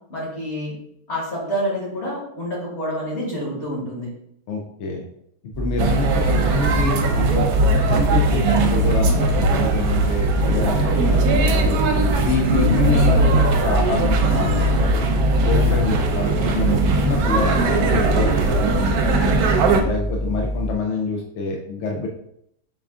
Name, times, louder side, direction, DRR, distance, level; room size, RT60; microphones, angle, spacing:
voice 1, 0.1-0.7 1.1-4.1, equal, 50° left, -4 dB, 1.8 m, -27 dB
voice 2, 4.5-5.0 5.6-7.5 7.7-11.8 12.2-15.0 15.4-19.5 19.8-22.1, left 3 dB, 65° left, 1 dB, 0.7 m, -26 dB
sound 1, 5.5-20.7, equal, 25° left, 0.8 m, -27 dB
sound 2, 5.8-19.8, right 2 dB, 80° right, 1.1 m, -19 dB
5.4 x 2.4 x 3.5 m, 0.75 s
omnidirectional pair, 1.6 m